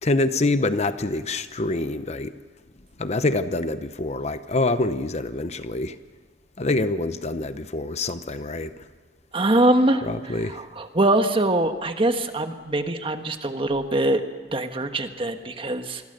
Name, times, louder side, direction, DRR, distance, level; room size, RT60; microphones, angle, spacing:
voice 1, 0.0-2.3 3.0-6.0 6.6-8.8 10.0-10.6, left 2 dB, 40° left, 11 dB, 0.8 m, -25 dB
voice 2, 9.3-10.1 10.5-14.2 14.5-16.0, right 1 dB, 30° right, 7 dB, 1.4 m, -23 dB
27.5 x 21.5 x 6.7 m, 1.3 s
head